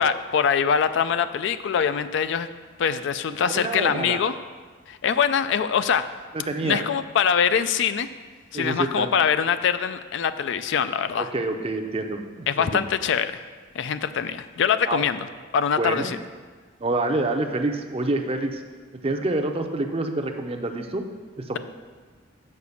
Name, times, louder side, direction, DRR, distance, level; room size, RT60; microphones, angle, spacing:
voice 1, 0.0-2.5 2.8-4.3 4.9-6.0 6.6-8.1 8.5-11.3 12.5-13.4 13.7-16.2, left 7 dB, 65° left, 12 dB, 0.3 m, -23 dB
voice 2, 3.5-4.2 6.3-6.8 8.5-9.1 11.2-12.8 14.9-15.0 15.8-16.1 16.8-18.6 18.9-21.0 21.4-21.6, right 2 dB, 30° right, 5 dB, 0.6 m, -27 dB
6.6 x 5.0 x 7.0 m, 1.5 s
head